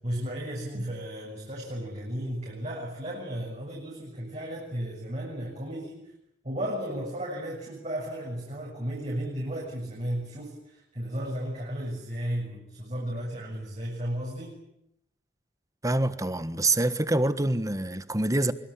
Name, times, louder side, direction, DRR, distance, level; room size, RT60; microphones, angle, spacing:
voice 1, 0.0-6.1 6.4-14.6, equal, 40° right, 7.2 m, -34 dB
voice 2, 15.8-18.5, right 2 dB, 20° right, 1.4 m, -26 dB
24.5 x 24.0 x 9.9 m
head